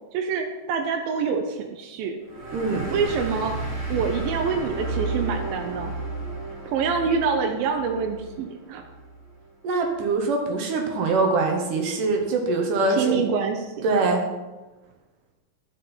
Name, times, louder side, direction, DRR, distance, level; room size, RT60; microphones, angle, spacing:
voice 1, 0.1-2.2 2.9-3.6 3.9-5.9 6.7-8.8 12.9-13.9, right 5 dB, 85° right, 3 dB, 2.5 m, -26 dB
sound 1, 2.3-9.4, right 3 dB, 20° right, 3.1 m, -33 dB
voice 2, 2.5-2.9 9.6-13.2 13.8-14.2, right 3 dB, 70° right, 2 dB, 2.5 m, -23 dB
11.5 x 5.6 x 4.3 m, 1.1 s
omnidirectional pair, 4.0 m